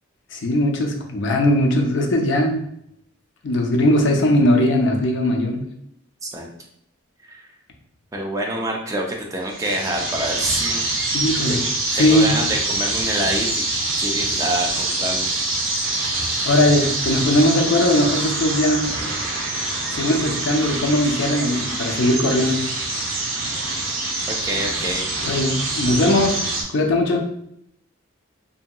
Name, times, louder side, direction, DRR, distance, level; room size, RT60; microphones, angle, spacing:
voice 1, 0.3-2.6 3.4-5.6 11.1-11.6 11.9-12.4 16.4-18.9 19.9-22.6 25.2-26.4 26.7-27.3, left 1 dB, 60° left, 1 dB, 0.5 m, -19 dB
voice 2, 8.1-10.8 11.4-11.6 12.0-13.6 14.0-15.3 24.3-25.0, right 1 dB, 15° right, 0 dB, 0.4 m, -26 dB
sound 1, 9.5-26.6, right 2 dB, 70° right, 0.7 m, -25 dB
2.8 x 2.7 x 2.2 m, 0.73 s
head